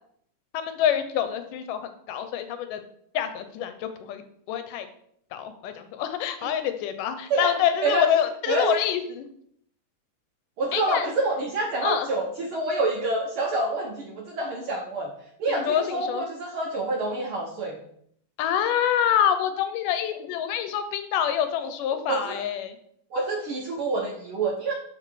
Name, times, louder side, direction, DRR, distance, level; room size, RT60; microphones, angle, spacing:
voice 1, 0.5-2.8 3.1-4.2 4.5-4.9 5.3-9.3 10.7-11.1 11.8-12.1 15.5-16.2 18.4-22.8, left 9 dB, 75° left, 9 dB, 2.3 m, -26 dB
voice 2, 8.5-8.8 10.6-15.1 15.4-17.8 22.1-22.4 23.1-24.7, right 2 dB, 85° right, -1 dB, 1.1 m, -27 dB
8.1 x 4.8 x 6.4 m, 0.68 s
omnidirectional pair, 4.1 m